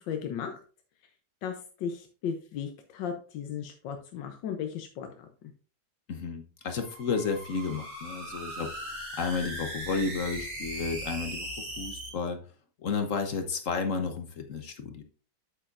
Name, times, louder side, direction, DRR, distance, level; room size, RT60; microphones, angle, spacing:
voice 1, 0.1-0.6 1.4-5.2, left 7 dB, 85° left, 5 dB, 1.6 m, -36 dB
voice 2, 6.1-8.7 9.2-11.5 11.8-12.4 12.8-15.0, left 4 dB, 55° left, 6 dB, 1.1 m, -32 dB
sound 1, 6.7-12.1, right 1 dB, 35° right, 2.9 m, -39 dB
8.4 x 7.9 x 2.5 m, 0.37 s
omnidirectional pair, 1.9 m